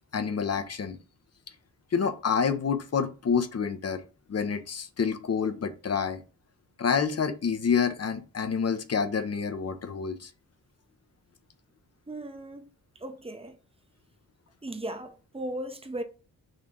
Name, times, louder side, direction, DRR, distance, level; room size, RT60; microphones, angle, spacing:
voice 1, 0.1-1.0 1.9-4.0 4.3-6.2 6.8-10.3, left 6 dB, 40° left, 0.8 m, -28 dB
voice 2, 12.1-12.7 13.0-13.6 14.6-16.0, right 1 dB, 15° right, 0.8 m, -37 dB
3.8 x 2.8 x 3.6 m
supercardioid pair, 45°, 40 cm